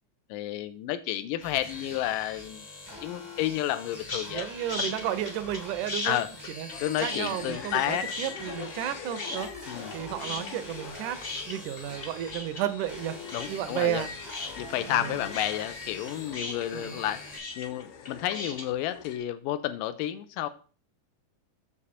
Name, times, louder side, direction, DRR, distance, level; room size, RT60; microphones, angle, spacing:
voice 1, 0.3-2.6 3.0-4.5 4.7-5.0 6.0-6.3 6.8-8.1 9.7-9.9 13.3-14.1 14.6-17.2 17.6-20.5, left 13 dB, 85° left, 12 dB, 2.3 m, -31 dB
sound 1, 1.4-17.4, left 2 dB, 20° left, 0.5 m, -44 dB
sound 2, 4.1-4.4 4.7-5.6 5.9-8.9 9.2-9.9 10.2-18.6, left 3 dB, 55° left, 0.8 m, -36 dB
voice 2, 4.3-6.2 6.6-6.7 7.0-9.5 9.9-11.2 11.5-13.2 13.5-14.1 14.8-15.2 16.7-17.0, right 12 dB, 80° right, 11 dB, 1.9 m, -32 dB
sound 3, 6.7-19.2, left 6 dB, 70° left, 2.1 m, -43 dB
7.3 x 6.8 x 4.2 m, 0.38 s
omnidirectional pair, 3.9 m